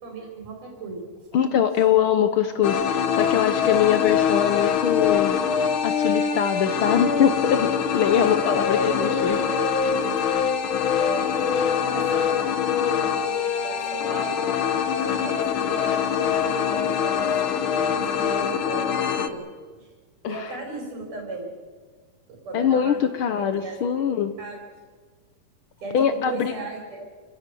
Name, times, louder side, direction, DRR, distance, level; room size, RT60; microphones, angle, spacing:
voice 1, 0.0-1.0 1.3-1.4 8.1-10.3 11.0-12.4 12.9-14.4 15.0-17.3 17.9-19.4 19.8-19.9 20.2-21.5 22.3-23.0 23.4-23.8 24.4-24.6 25.8-27.0, right 3 dB, 85° right, 0 dB, 5.5 m, -36 dB
voice 2, 1.3-5.4 5.8-9.4 20.2-20.6 22.5-24.4 25.9-26.5, left 9 dB, 85° left, 9 dB, 1.1 m, -22 dB
sound 1, 2.6-19.3, left 7 dB, 60° left, 1.5 m, -24 dB
28.0 x 17.5 x 7.0 m, 1.5 s
omnidirectional pair, 3.6 m